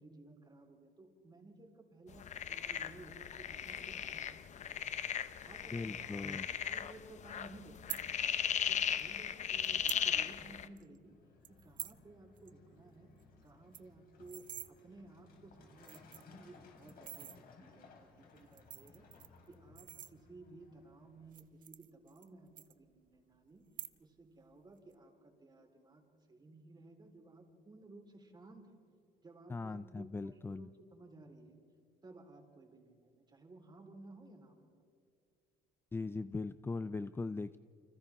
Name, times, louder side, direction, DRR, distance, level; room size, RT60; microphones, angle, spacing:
voice 1, 0.0-4.7 5.4-8.0 8.7-11.1 11.6-13.1 13.4-19.1 19.5-23.7 24.0-28.8 29.2-31.6 32.0-34.7, right 2 dB, 25° right, 2 dB, 4.0 m, -56 dB
sound 1, 2.2-10.7, left 8 dB, 45° left, 0.8 m, -37 dB
voice 2, 5.7-6.5 29.5-30.7 35.9-37.6, left 3 dB, 15° left, 13 dB, 0.4 m, -39 dB
sound 2, 7.7-8.0 9.0-9.1 9.6-10.1 10.4-10.5 10.8-11.0 11.4-12.0 12.4-12.5 12.8-12.9 13.2-13.3 13.5-14.7 15.4-15.5 15.8-16.4 16.9-17.4 18.4-20.5 21.2-22.3 22.6-23.2 23.6-24.2 24.5-24.9, right 11 dB, 55° right, 0.8 m, -47 dB
Truck, 11.0-21.3, left 4 dB, 60° left, 4.1 m, -61 dB
29.5 x 25.5 x 3.6 m, 2.3 s
cardioid pair, 110°, 17 cm